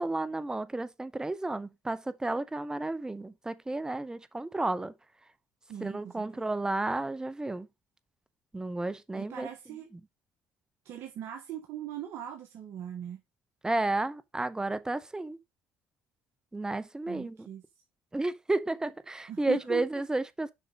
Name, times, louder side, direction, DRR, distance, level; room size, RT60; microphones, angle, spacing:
voice 1, 0.0-4.9 5.8-7.7 8.5-9.5 13.6-15.4 16.5-17.5 18.1-20.5, right 2 dB, 15° right, 0.9 m, -32 dB
voice 2, 5.7-6.5 9.1-9.9 10.8-13.2 17.1-17.6 19.3-19.8, right 10 dB, 65° right, 1.5 m, -40 dB
7.1 x 5.5 x 4.0 m
supercardioid pair, 70°, 5 cm